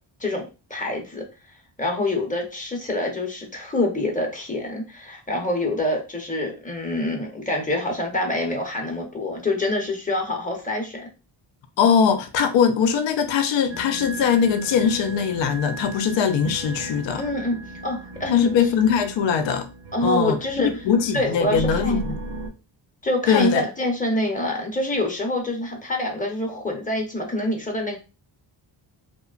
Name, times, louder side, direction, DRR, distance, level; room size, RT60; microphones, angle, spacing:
voice 1, 0.2-1.2 1.8-11.0 17.1-18.5 19.9-20.7 21.1-22.0 23.0-28.0, left 1 dB, 15° left, 0.7 m, -26 dB
voice 2, 11.8-17.2 18.3-19.7 20.0-22.1 23.3-23.6, left 7 dB, 70° left, 0.5 m, -21 dB
sound 1, 13.7-22.5, right 2 dB, 55° right, 0.6 m, -36 dB
2.8 x 2.1 x 2.4 m
cardioid pair, 105°, 47 cm